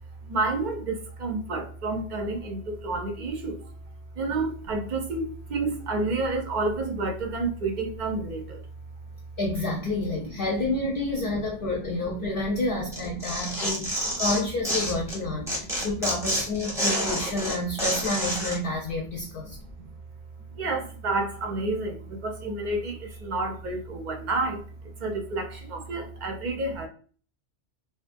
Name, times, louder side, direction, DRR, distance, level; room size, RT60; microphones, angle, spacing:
voice 1, 0.3-3.6 4.2-8.6 14.0-14.1 15.8-15.9 19.8-19.9 20.6-24.6 25.0-26.9, right 2 dB, 55° right, 4 dB, 0.5 m, -29 dB
voice 2, 9.4-19.6, left 2 dB, 60° left, -2 dB, 0.7 m, -29 dB
Tearing, 12.9-15.2 15.5-18.6, equal, 5° right, 0.6 m, -28 dB
2.5 x 2.4 x 2.5 m, 0.42 s
omnidirectional pair, 1.2 m